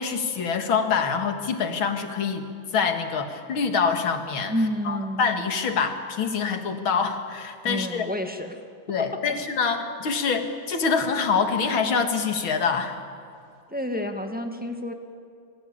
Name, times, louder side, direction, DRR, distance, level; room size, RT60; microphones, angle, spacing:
voice 1, 0.0-2.5 2.7-4.5 4.9-8.1 8.9-13.0, left 5 dB, 85° left, 6 dB, 2.7 m, -25 dB
voice 2, 4.5-5.2 7.6-8.6 13.7-14.9, equal, 5° right, 4 dB, 1.7 m, -29 dB
27.5 x 21.5 x 8.7 m, 2.4 s
omnidirectional pair, 2.2 m